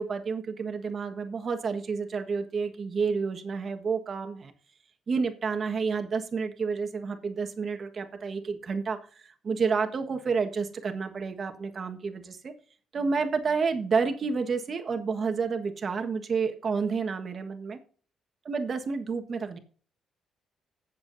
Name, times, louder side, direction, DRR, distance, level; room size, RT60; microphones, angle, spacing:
voice 1, 0.0-4.5 5.1-12.5 12.9-17.8 18.4-19.6, right 5 dB, 45° right, 6 dB, 1.5 m, -30 dB
18.5 x 7.5 x 2.7 m, 0.42 s
cardioid pair, 90°, 0 cm